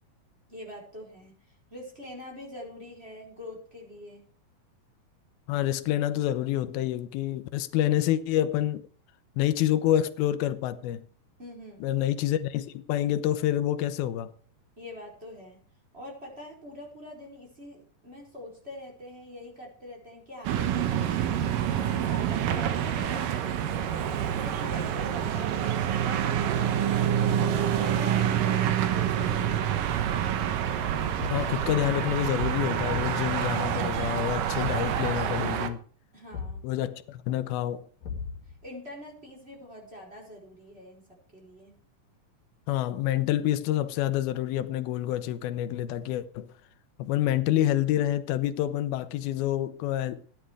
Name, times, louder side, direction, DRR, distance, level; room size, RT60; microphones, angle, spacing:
voice 1, 0.5-4.2 11.4-11.8 14.8-15.6 15.9-30.1 36.1-36.6 38.6-41.0 41.3-41.8, left 1 dB, 15° right, 4.6 m, -44 dB
voice 2, 5.5-8.9 9.4-11.0 11.8-14.3 31.3-35.8 36.6-37.9 42.7-46.5 47.0-50.2, left 12 dB, 85° left, 2.7 m, -27 dB
sound 1, 20.4-35.7, right 9 dB, 70° right, 2.7 m, -27 dB
Thump thud, 31.2-31.6 32.9-33.2 34.6-35.0 36.3-36.7 38.0-38.6, left 5 dB, 65° left, 3.9 m, -37 dB
15.0 x 10.5 x 4.7 m
omnidirectional pair, 4.2 m